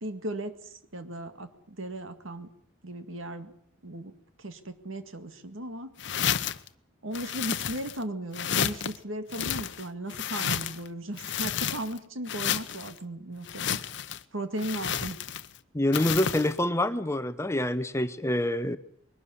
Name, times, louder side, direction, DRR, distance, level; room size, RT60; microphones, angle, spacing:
voice 1, 0.0-2.5 2.8-3.5 3.8-4.1 4.4-5.9 7.0-13.8 14.3-15.2, right 1 dB, 75° right, 9 dB, 2.0 m, -36 dB
sound 1, 6.0-6.7 7.1-8.0 8.3-9.0 9.3-10.9 11.2-12.0 12.3-12.9 13.4-14.2 14.6-15.6 15.9-16.5, left 8 dB, 60° left, 0.8 m, -31 dB
voice 2, 15.7-18.8, left 1 dB, 15° left, 12 dB, 0.7 m, -26 dB
21.5 x 12.5 x 9.8 m, 0.67 s
head